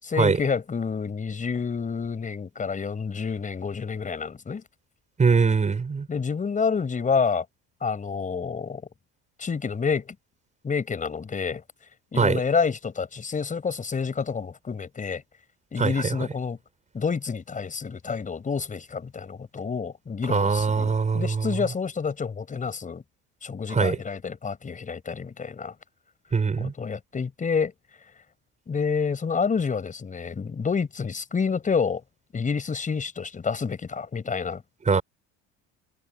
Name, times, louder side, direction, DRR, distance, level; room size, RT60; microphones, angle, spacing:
voice 1, 0.0-4.6 6.1-7.5 7.8-8.8 9.4-10.2 10.6-11.6 12.1-15.2 15.7-16.6 16.9-23.0 23.4-25.7 26.6-27.7 28.7-32.0 32.3-34.6, left 5 dB, 25° left, 5.8 m, -28 dB
voice 2, 5.2-6.1 12.2-12.4 15.8-16.1 20.3-21.2 23.7-24.0 26.3-26.7 34.9-35.0, right 5 dB, 20° right, 5.5 m, -22 dB
cardioid pair, 140°, 33 cm